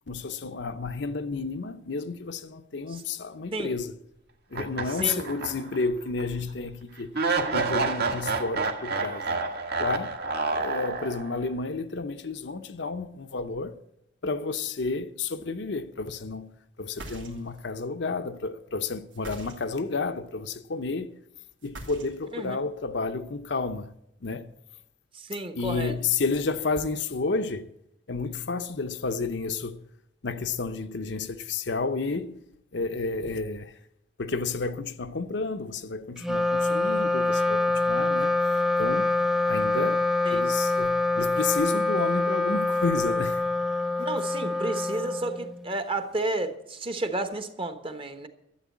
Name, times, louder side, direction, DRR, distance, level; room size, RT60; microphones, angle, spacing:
voice 1, 0.1-3.9 4.5-7.1 7.5-9.4 9.8-10.2 10.5-13.8 14.2-21.1 21.6-23.9 24.2-24.5 25.6-27.7 28.1-29.8 30.2-32.4 32.7-33.7 34.2-38.3 38.8-39.1 39.5-40.0 40.3-43.5, left 4 dB, 65° left, 0.7 m, -31 dB
sound 1, 4.5-5.8 6.2-6.3 7.1-11.4, right 4 dB, 55° right, 1.6 m, -29 dB
voice 2, 4.9-5.3 22.3-22.6 25.1-25.9 40.2-40.5 44.0-48.3, right 2 dB, 30° right, 1.1 m, -32 dB
sound 2, 16.8-17.7 19.1-19.9 21.6-22.5, right 1 dB, 85° right, 2.7 m, -43 dB
Wind instrument woodwind instrument, 36.2-45.8, left 2 dB, ahead, 0.4 m, -25 dB
12.5 x 8.0 x 8.4 m
head